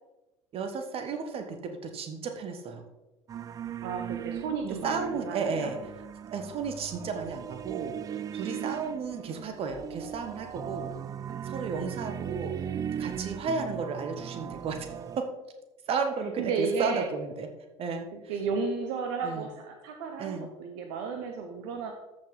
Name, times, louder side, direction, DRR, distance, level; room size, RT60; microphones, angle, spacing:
voice 1, 0.5-2.9 4.6-5.8 6.3-10.9 11.4-12.7 13.0-14.9 15.2-15.3 15.9-17.5 17.8-18.1 19.2-19.4 20.2-20.5, right 5 dB, 40° right, 6 dB, 1.4 m, -33 dB
sound 1, 3.3-15.2, right 9 dB, 25° right, 0.3 m, -38 dB
voice 2, 3.8-5.7 16.4-17.1 18.1-21.9, right 5 dB, 55° right, 5 dB, 1.0 m, -33 dB
13.5 x 5.7 x 4.0 m, 1.0 s
figure-of-eight pair, 65°, 15 cm